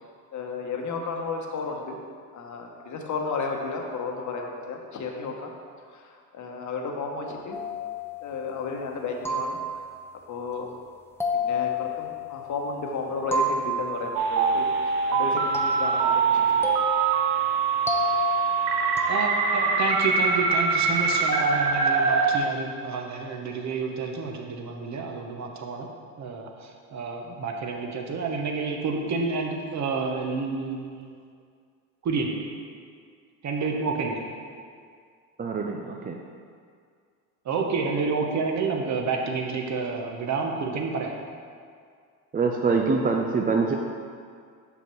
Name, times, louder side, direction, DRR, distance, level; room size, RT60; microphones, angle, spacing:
voice 1, 0.3-2.0 2.3-5.5 5.9-7.6 8.2-9.6 10.3-10.7 11.3-16.7, left 4 dB, 40° left, 1 dB, 1.2 m, -33 dB
sound 1, 7.5-8.6 9.3-10.2 11.2-12.8 13.3-14.5 15.5-19.8, left 2 dB, 5° left, 0.8 m, -31 dB
sound 2, 14.2-22.4, right 5 dB, 90° right, 0.8 m, -23 dB
voice 2, 19.1-25.9 26.2-31.0 32.0-32.5 33.4-34.3 37.4-41.2, right 4 dB, 35° right, 2 dB, 1.0 m, -29 dB
voice 3, 35.4-36.2 42.3-43.7, right 4 dB, 20° right, 1 dB, 0.5 m, -24 dB
6.1 x 5.6 x 4.6 m, 2.2 s
hypercardioid pair, 80°, 46 cm